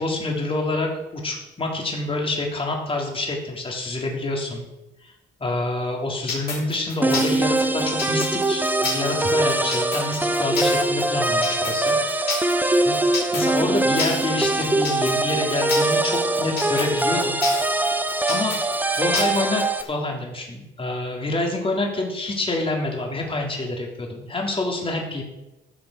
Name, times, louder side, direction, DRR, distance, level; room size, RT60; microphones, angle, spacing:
voice 1, 0.0-4.6 5.0-5.1 5.4-11.9 12.8-12.9 13.3-17.4 18.3-18.6 19.0-25.2, left 2 dB, 25° left, 0 dB, 3.5 m, -27 dB
sound 1, 6.3-19.9, left 4 dB, 50° left, 3.7 m, -30 dB
sound 2, 7.0-19.8, right 2 dB, 10° right, 1.0 m, -22 dB
14.5 x 6.2 x 6.4 m, 0.97 s
cardioid pair, 90°, 20 cm